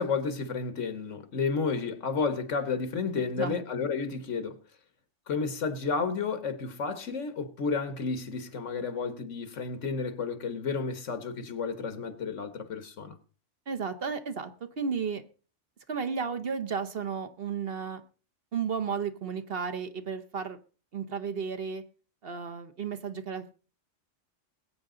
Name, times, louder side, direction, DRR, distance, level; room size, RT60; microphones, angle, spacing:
voice 1, 0.0-4.6 5.3-13.2, left 5 dB, 80° left, 1.7 m, -31 dB
voice 2, 13.7-14.5 14.8-15.2 15.9-18.0 18.5-20.6 20.9-21.8 22.2-23.5, right 6 dB, 55° right, 1.2 m, -33 dB
20.0 x 8.6 x 3.9 m
omnidirectional pair, 1.2 m